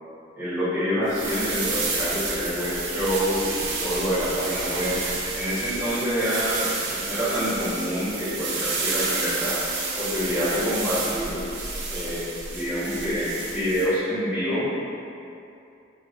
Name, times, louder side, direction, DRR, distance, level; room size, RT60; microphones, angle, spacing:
voice 1, 0.4-5.0 5.3-9.6 10.0-11.4 11.9-14.7, equal, 5° right, -17 dB, 1.3 m, -27 dB
sound 1, 1.1-13.9, right 3 dB, 85° right, 0.8 m, -30 dB
6.8 x 2.8 x 2.5 m, 2.6 s
head